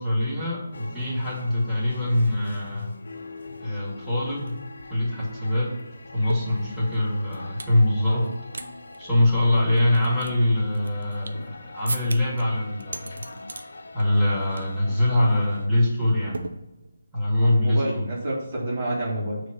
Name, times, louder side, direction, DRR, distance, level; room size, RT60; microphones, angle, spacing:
voice 1, 0.0-2.9 3.6-4.6 4.9-5.7 6.1-8.3 9.0-13.2 13.9-16.4 17.1-18.1, left 1 dB, ahead, -11 dB, 2.4 m, -23 dB
sound 1, 0.7-15.7, left 3 dB, 70° left, 0.7 m, -42 dB
sound 2, 4.5-4.6 4.8-7.8 8.2-8.7 8.9-9.0 9.6-11.5 11.9-12.4 12.8-13.7 14.0-14.3 14.6-14.8 15.1-15.4 16.3-17.1, right 3 dB, 70° right, 0.6 m, -38 dB
voice 2, 17.4-19.4, right 1 dB, 40° right, -5 dB, 1.8 m, -29 dB
6.7 x 3.2 x 5.9 m, 0.93 s
figure-of-eight pair, 150°, 0 cm